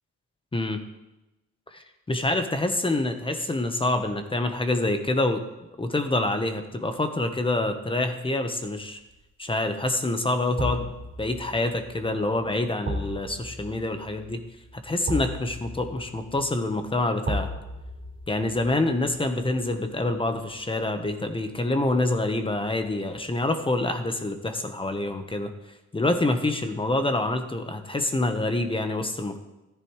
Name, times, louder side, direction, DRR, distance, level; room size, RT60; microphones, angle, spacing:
voice 1, 2.1-5.4 5.8-9.0 9.4-10.9 11.2-14.4 14.8-17.5 18.3-25.5 25.9-29.4, left 2 dB, 15° left, 7 dB, 1.1 m, -26 dB
sound 1, 8.8-9.2 10.6-21.6 21.9-22.0, equal, 40° right, 3.3 m, -36 dB
14.0 x 10.5 x 3.2 m, 0.99 s
cardioid pair, 90°, 30 cm